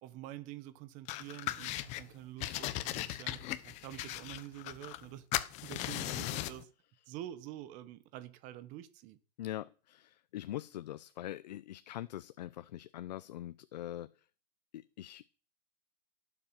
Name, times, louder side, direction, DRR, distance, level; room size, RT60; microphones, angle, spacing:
voice 1, 0.0-5.3 5.6-6.7 7.1-9.2, right 13 dB, 35° right, 1.3 m, -47 dB
sound 1, 1.1-2.0 2.4-5.1 5.3-6.6, left 15 dB, 35° left, 0.9 m, -38 dB
voice 2, 9.4-14.3 14.7-15.3, left 13 dB, 80° left, 0.7 m, -43 dB
16.5 x 7.6 x 5.9 m
supercardioid pair, 150°, 21 cm